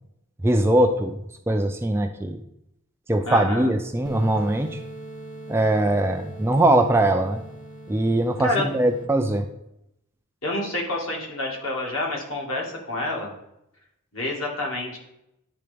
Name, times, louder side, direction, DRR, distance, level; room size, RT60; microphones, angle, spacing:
voice 1, 0.4-1.2 1.5-2.4 3.1-4.8 5.5-7.4 7.9-9.5, right 1 dB, 10° right, 6 dB, 0.3 m, -21 dB
voice 2, 3.3-3.7 8.4-8.7 10.4-13.3 14.1-15.0, left 2 dB, 70° left, -1 dB, 1.8 m, -28 dB
sound 1, 4.0-9.0, right 1 dB, 20° left, 0.8 m, -40 dB
9.9 x 3.8 x 3.4 m, 0.82 s
head